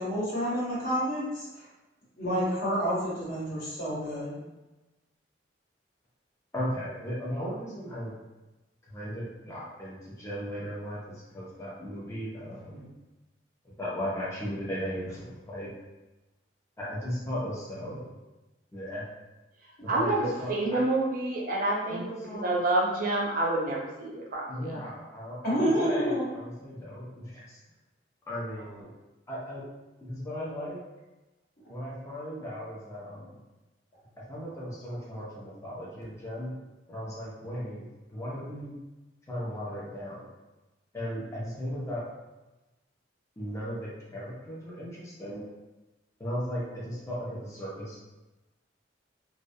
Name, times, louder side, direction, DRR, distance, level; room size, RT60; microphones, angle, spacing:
voice 1, 0.0-1.6 2.2-4.4 25.4-26.2, equal, 50° left, -8 dB, 0.9 m, -29 dB
voice 2, 6.5-8.2 8.9-12.9 13.8-15.7 16.8-18.2 18.7-19.1 19.8-20.8 21.9-22.5 24.5-27.6 28.3-28.9 29.3-29.6 30.0-30.8 31.7-33.4 34.3-36.5 36.9-38.7 39.3-40.3 40.9-42.1 43.4-45.5 46.2-48.0, equal, 15° left, -7 dB, 0.5 m, -36 dB
voice 3, 19.9-22.0 22.4-24.6, right 2 dB, 50° right, -2 dB, 0.4 m, -28 dB
2.2 x 2.1 x 2.6 m, 1.1 s
head